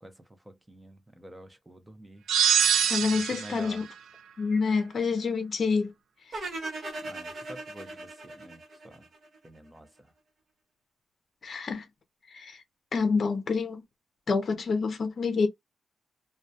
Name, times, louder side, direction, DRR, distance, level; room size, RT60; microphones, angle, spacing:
voice 1, 0.0-2.2 3.0-3.8 7.0-9.1 9.4-9.9, right 1 dB, 10° right, 0.6 m, -48 dB
sound 1, 2.3-3.7, right 8 dB, 85° right, 0.3 m, -24 dB
voice 2, 2.9-3.8 4.4-5.9 11.4-11.9 12.3-12.6 12.9-13.8 14.3-15.5, left 4 dB, 50° left, 0.6 m, -27 dB
sound 2, 6.3-9.5, right 2 dB, 50° right, 0.8 m, -38 dB
2.2 x 2.1 x 2.7 m
wide cardioid pair, 130°, 0 cm